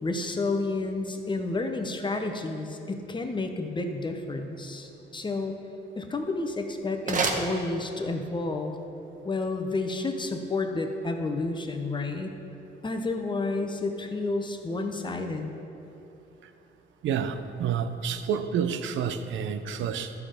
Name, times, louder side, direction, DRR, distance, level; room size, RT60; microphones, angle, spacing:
voice 1, 0.0-5.6 6.0-8.7 9.2-12.3 12.8-15.5, left 3 dB, 25° left, 5 dB, 0.9 m, -30 dB
sound 1, 6.2-8.3, right 3 dB, 40° right, 1.1 m, -32 dB
voice 2, 17.0-20.1, right 7 dB, 75° right, 9 dB, 0.6 m, -29 dB
11.5 x 6.0 x 5.0 m, 3.0 s
cardioid pair, 90°, 20 cm